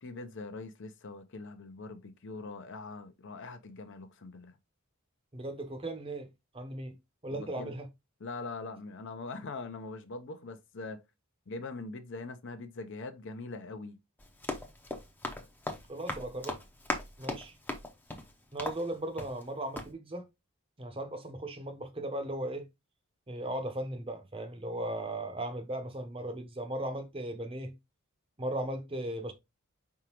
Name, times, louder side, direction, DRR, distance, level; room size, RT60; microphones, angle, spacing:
voice 1, 0.0-4.6 7.3-7.7 8.2-11.0 11.5-14.0, left 3 dB, 55° left, 0.6 m, -42 dB
voice 2, 5.3-7.0 7.2-7.9 15.9-16.6 17.2-17.6 18.5-20.3 20.8-22.7 23.3-27.8 28.4-29.3, right 1 dB, 25° right, 0.8 m, -37 dB
Run, 14.2-19.5 19.7-19.9, left 1 dB, 10° left, 0.6 m, -39 dB
4.9 x 3.6 x 2.9 m
head